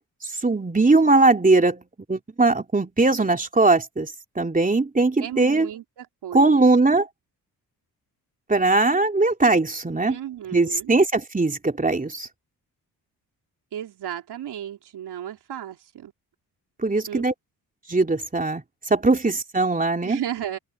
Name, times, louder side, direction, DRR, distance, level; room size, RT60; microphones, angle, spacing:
voice 1, 0.4-1.8 2.1-5.7 6.3-7.1 8.5-10.2 10.5-12.3 16.8-17.3 17.9-18.6 18.9-20.2, right 3 dB, 20° right, 3.3 m, -20 dB
voice 2, 5.2-6.7 10.1-11.0 13.7-16.1 17.1-17.2 20.0-20.6, right 10 dB, 75° right, 4.0 m, -34 dB
open air
supercardioid pair, 60°, 39 cm